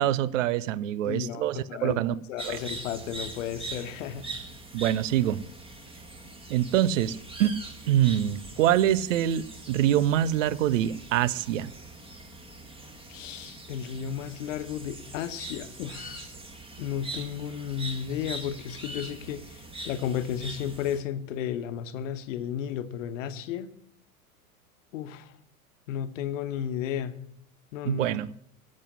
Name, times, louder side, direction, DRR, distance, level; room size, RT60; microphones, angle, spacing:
voice 1, 0.0-2.1 2.4-2.6 4.7-5.4 6.5-7.6 7.9-11.7 27.8-28.3, right 11 dB, 60° right, 0.7 m, -25 dB
voice 2, 1.0-4.3 13.1-16.3 16.8-23.7 24.9-25.3 25.9-27.1 27.7-28.1, left 9 dB, 55° left, 1.2 m, -33 dB
sound 1, 2.4-21.0, right 2 dB, 10° right, 1.8 m, -42 dB
12.0 x 7.4 x 9.7 m
figure-of-eight pair, 90°, 44 cm